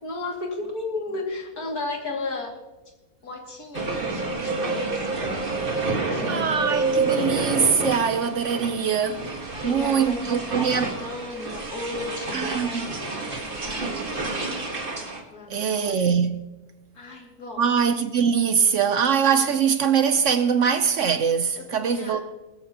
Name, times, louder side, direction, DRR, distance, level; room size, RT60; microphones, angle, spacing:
voice 1, 0.0-2.6 3.2-5.4 5.8-6.7 9.6-14.6 15.3-15.9 16.9-17.6 21.6-22.2, left 3 dB, 75° left, 2.9 m, -35 dB
sound 1, 3.7-15.2, right 3 dB, 35° right, 1.7 m, -29 dB
voice 2, 6.3-9.3 9.6-10.9 12.3-12.9 15.5-16.4 17.6-22.2, right 7 dB, 60° right, 0.9 m, -22 dB
21.5 x 13.0 x 2.9 m
omnidirectional pair, 1.6 m